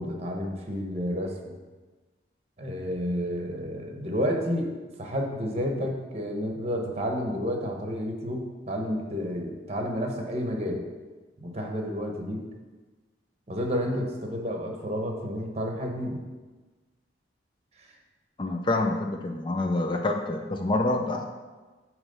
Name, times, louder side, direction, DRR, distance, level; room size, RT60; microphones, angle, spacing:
voice 1, 0.0-1.5 2.6-10.8 11.4-12.4 13.5-16.2, equal, 35° right, 2 dB, 1.0 m, -30 dB
voice 2, 18.4-21.3, left 2 dB, 25° left, 3 dB, 0.4 m, -27 dB
9.1 x 3.1 x 5.3 m, 1.3 s
head